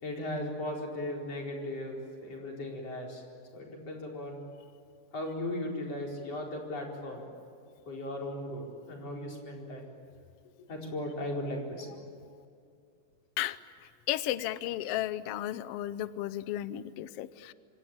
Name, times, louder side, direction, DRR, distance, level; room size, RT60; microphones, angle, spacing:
voice 1, 0.0-3.2 3.5-4.4 5.1-7.2 7.9-9.9 10.7-11.9, left 1 dB, 50° left, -1 dB, 5.5 m, -37 dB
voice 2, 14.1-17.5, left 13 dB, 90° left, 14 dB, 1.3 m, -34 dB
26.5 x 24.5 x 9.0 m, 2.4 s
omnidirectional pair, 3.8 m